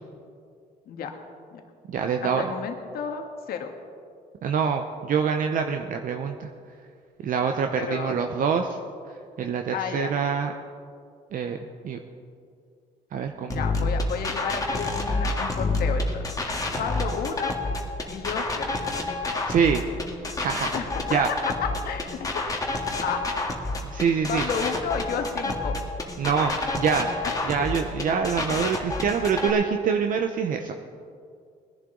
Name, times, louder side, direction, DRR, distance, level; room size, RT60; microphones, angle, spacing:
voice 1, 0.9-1.2 1.5-1.6 2.4-3.7 7.7-8.2 9.7-10.1 13.5-16.3 16.8-17.5 18.1-18.7 20.7-21.0 21.8-23.2 24.3-25.8 27.2-27.3 27.6-27.7, left 6 dB, 65° left, 4 dB, 1.6 m, -32 dB
voice 2, 1.9-2.4 4.4-6.5 7.2-8.8 9.4-10.5 11.3-11.6 11.8-12.0 13.1-13.6 19.5-19.8 20.4-20.7 21.1-21.3 23.9-24.4 26.2-27.1 27.5-30.7, right 6 dB, 55° right, 5 dB, 0.8 m, -25 dB
sound 1, 13.5-29.5, left 2 dB, 20° left, 1.8 m, -28 dB
20.5 x 11.0 x 3.9 m, 2.3 s
cardioid pair, 110°, 17 cm